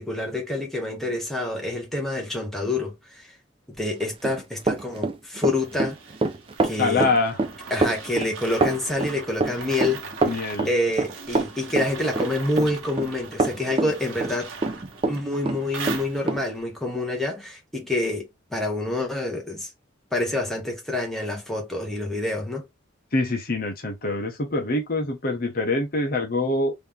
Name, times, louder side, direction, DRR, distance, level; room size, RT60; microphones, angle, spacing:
voice 1, 0.0-3.4 3.7-6.0 6.6-7.1 7.7-10.3 10.6-14.5 15.1-19.7 20.1-22.7, left 2 dB, ahead, 1.2 m, -27 dB
Run, 4.0-15.2 15.5-16.4, right 3 dB, 25° right, 0.5 m, -25 dB
sound 1, 5.6-16.6, right 4 dB, 85° right, 1.1 m, -40 dB
voice 2, 6.8-7.4 10.2-10.7 23.1-26.7, left 2 dB, 50° left, 0.9 m, -25 dB
3.3 x 2.8 x 3.6 m
head